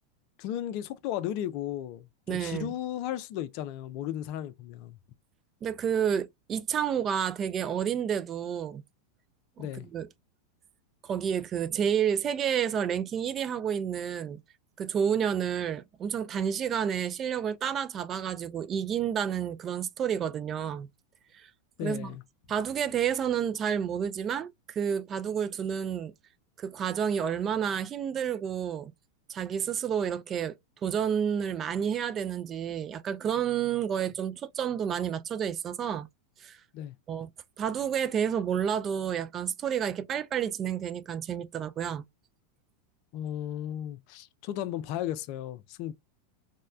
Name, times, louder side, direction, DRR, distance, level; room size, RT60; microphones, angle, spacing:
voice 1, 0.4-5.0 9.6-9.9 21.8-22.2 36.7-36.9 43.1-45.9, left 11 dB, 50° left, 0.4 m, -35 dB
voice 2, 2.3-2.7 5.6-8.8 9.6-10.1 11.0-14.4 14.8-20.9 21.3-21.5 21.8-22.1 22.5-26.1 26.6-28.9 29.3-30.6 30.8-36.1 36.4-36.6 37.1-37.3 37.6-42.0, right 8 dB, 30° right, 0.3 m, -30 dB
3.1 x 2.1 x 2.4 m
hypercardioid pair, 95°, 0 cm